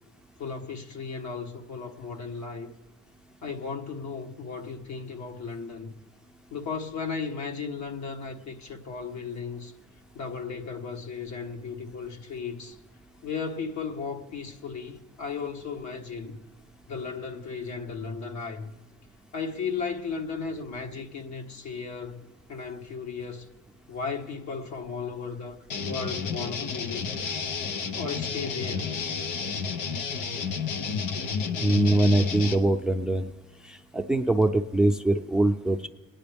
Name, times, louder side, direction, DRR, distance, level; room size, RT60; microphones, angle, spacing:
voice 1, 0.4-2.7 3.4-5.9 6.5-9.7 10.1-12.8 13.2-16.4 16.9-18.7 19.3-22.2 22.5-23.5 23.9-25.6 25.8-27.1 27.9-28.9, left 5 dB, 65° left, 1.5 m, -35 dB
sound 1, 25.7-32.6, left 5 dB, 90° left, 0.9 m, -31 dB
voice 2, 31.6-33.3 33.7-35.9, right 1 dB, ahead, 0.6 m, -23 dB
27.0 x 9.8 x 3.5 m
cardioid pair, 90°, 30 cm